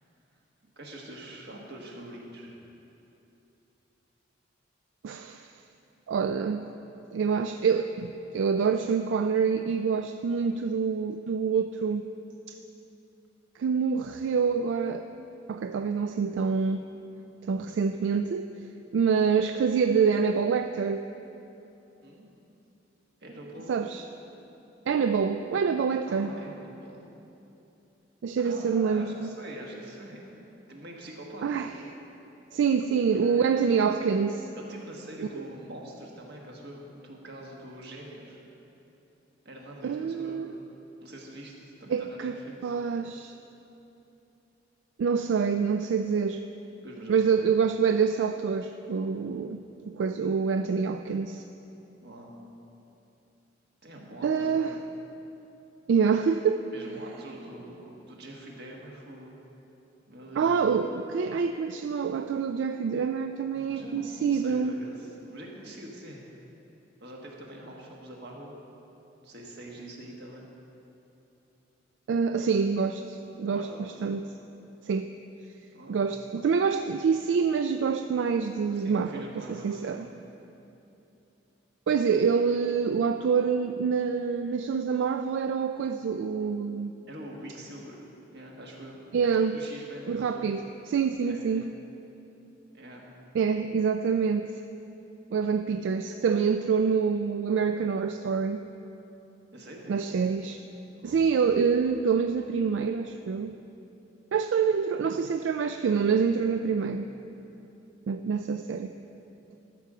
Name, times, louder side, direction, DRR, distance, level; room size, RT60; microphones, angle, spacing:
voice 1, 0.7-2.5 22.0-22.3 23.2-23.8 26.1-27.1 28.4-30.2 30.7-31.7 33.1-34.0 34.5-38.4 39.4-40.4 41.0-42.7 46.8-47.4 52.0-52.3 53.8-54.8 56.7-59.4 60.1-60.6 63.5-66.3 67.0-68.6 69.2-70.4 73.4-74.0 75.7-76.0 78.7-80.0 87.1-88.1 88.3-89.0 89.5-90.5 91.2-91.7 92.7-93.0 99.5-100.0 100.9-101.2, right 1 dB, 60° right, -1 dB, 1.5 m, -44 dB
voice 2, 5.0-5.5 6.1-6.6 7.1-12.1 12.5-12.6 13.6-15.1 15.5-16.9 17.5-18.5 18.9-21.1 23.7-24.0 24.9-26.3 28.2-29.3 31.4-31.7 32.5-34.5 39.8-40.5 41.9-43.3 45.0-46.4 47.1-51.4 54.2-54.8 55.9-56.6 60.4-64.7 72.1-74.2 74.8-75.1 75.9-80.1 81.9-86.9 89.1-89.6 90.1-90.6 90.9-91.6 93.3-94.5 95.3-98.6 99.9-100.6 101.0-103.6 104.3-107.1 108.1-108.9, right 6 dB, 80° right, 8 dB, 0.3 m, -26 dB
12.5 x 4.9 x 6.7 m, 2.9 s
head